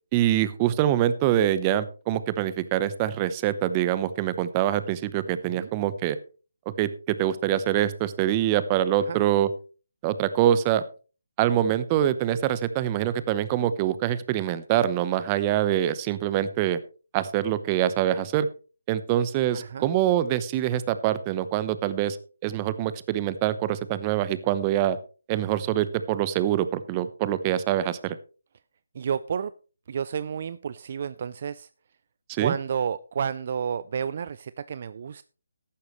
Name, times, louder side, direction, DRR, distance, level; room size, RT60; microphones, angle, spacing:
voice 1, 0.1-6.2 6.8-9.5 10.0-10.8 11.4-16.8 17.1-18.5 18.9-22.2 22.4-25.0 25.3-28.2 32.3-32.5, right 11 dB, 20° right, 14 dB, 0.8 m, -24 dB
voice 2, 19.5-19.9 28.9-29.6 29.9-31.7 32.4-35.2, right 7 dB, 45° right, 16 dB, 0.4 m, -31 dB
14.0 x 11.5 x 3.2 m, 0.36 s
figure-of-eight pair, 155°, 0 cm